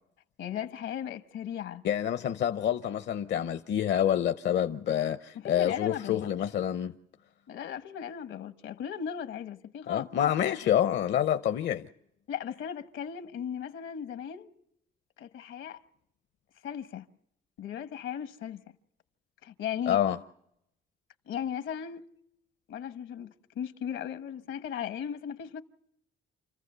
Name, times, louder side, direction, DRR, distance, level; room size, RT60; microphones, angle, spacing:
voice 1, 0.4-1.8 5.3-6.3 7.5-10.3 12.3-14.5 15.2-15.8 16.6-17.0 17.6-18.6 19.4-20.0 21.3-22.0 22.7-25.6, left 9 dB, 80° left, 1.1 m, -37 dB
voice 2, 1.8-6.9 9.9-11.9 19.9-20.2, left 10 dB, 65° left, 0.7 m, -27 dB
28.0 x 14.5 x 6.8 m
cardioid pair, 90°, 20 cm